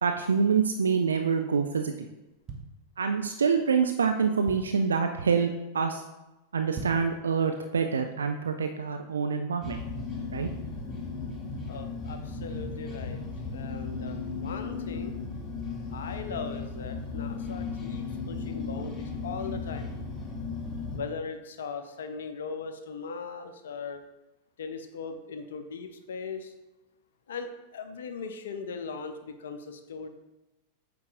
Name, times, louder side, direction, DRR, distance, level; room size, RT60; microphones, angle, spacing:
voice 1, 0.0-2.1 3.0-6.0 6.5-9.8 10.3-10.5, right 6 dB, 70° right, 6 dB, 0.3 m, -26 dB
sound 1, 2.2-3.4 3.9-4.0 4.2-4.9 5.4-5.7 5.9-6.0 6.6-7.2 7.6-7.7, right 4 dB, 30° right, 0.9 m, -41 dB
sound 2, 9.6-21.0, left 4 dB, 20° left, 1.0 m, -36 dB
voice 2, 11.7-13.2 13.5-15.2 15.9-19.9 20.9-24.0 24.6-26.5 27.3-30.1, left 5 dB, 65° left, 8 dB, 0.5 m, -39 dB
8.1 x 4.6 x 2.5 m, 1.0 s
figure-of-eight pair, 90°, 0 cm